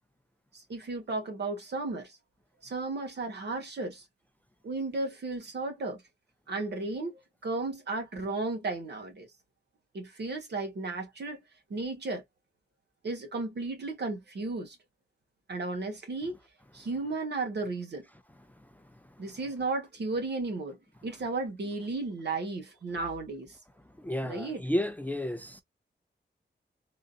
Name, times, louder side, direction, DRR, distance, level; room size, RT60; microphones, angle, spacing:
voice 1, 0.5-2.1 2.6-4.0 4.6-6.0 6.5-9.3 9.9-11.4 11.7-12.2 13.0-14.7 15.5-16.3 16.7-18.0 19.2-20.8 21.0-23.5 24.2-24.6, right 3 dB, 65° right, 1.3 m, -34 dB
voice 2, 24.0-25.6, left 1 dB, 10° left, 0.4 m, -31 dB
3.7 x 2.5 x 2.4 m
wide cardioid pair, 165°, 19 cm